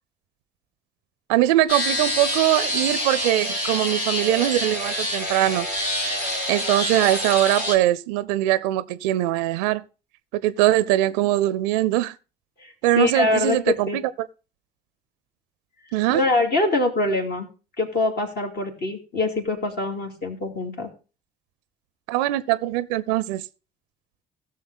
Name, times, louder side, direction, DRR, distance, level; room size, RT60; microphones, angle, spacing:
voice 1, 1.3-5.7 6.5-9.8 10.3-12.1 12.8-14.0 15.9-16.2 22.1-23.4, right 15 dB, 80° right, 0.5 m, -22 dB
sound 1, 1.7-7.8, left 1 dB, 80° left, 3.1 m, -26 dB
voice 2, 12.6-14.0 16.1-17.5 17.8-20.9, left 2 dB, 55° left, 2.7 m, -24 dB
16.0 x 6.7 x 4.0 m
hypercardioid pair, 50°, 21 cm